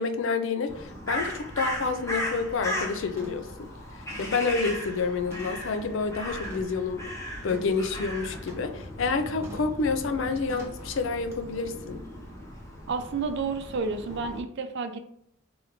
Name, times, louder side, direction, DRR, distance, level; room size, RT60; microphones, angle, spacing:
voice 1, 0.0-3.7 4.2-7.0 7.4-12.0, left 4 dB, 65° left, 7 dB, 0.4 m, -28 dB
Crow, 0.7-14.4, equal, 15° left, 0.8 m, -37 dB
sound 1, 1.9-2.1 2.5-2.8 3.2-3.6 4.1-5.8 6.4-6.8 7.5-8.8 9.4-9.8 10.5-10.9 11.3-11.4, right 1 dB, 15° right, 1.0 m, -46 dB
voice 2, 12.9-15.0, right 4 dB, 60° right, 8 dB, 0.5 m, -30 dB
3.5 x 3.4 x 3.0 m, 0.69 s
head